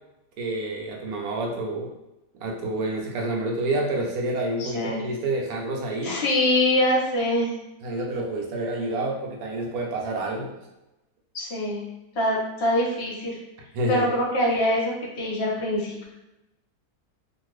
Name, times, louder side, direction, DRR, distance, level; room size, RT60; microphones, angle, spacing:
voice 1, 0.4-1.9 2.4-6.2 7.8-10.5 13.7-14.1, right 2 dB, 70° right, 0 dB, 1.0 m, -28 dB
voice 2, 4.6-5.0 6.0-7.5 11.3-11.8 12.1-13.4 13.9-16.0, left 1 dB, 50° left, -3 dB, 0.8 m, -24 dB
2.7 x 2.5 x 3.1 m, 0.95 s
omnidirectional pair, 1.8 m